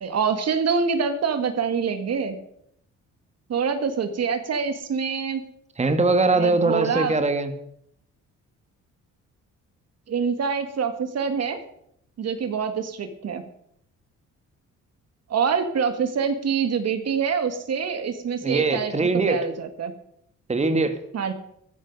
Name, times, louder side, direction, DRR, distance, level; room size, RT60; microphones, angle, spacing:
voice 1, 0.0-2.4 3.5-5.4 6.3-7.1 10.1-11.6 12.2-13.4 15.3-19.9 21.1-21.3, right 6 dB, 55° right, 8 dB, 1.7 m, -25 dB
voice 2, 5.8-7.5 18.4-19.4 20.5-21.0, right 3 dB, 20° right, 8 dB, 1.7 m, -21 dB
14.0 x 13.0 x 5.4 m, 0.73 s
cardioid pair, 90°, 30 cm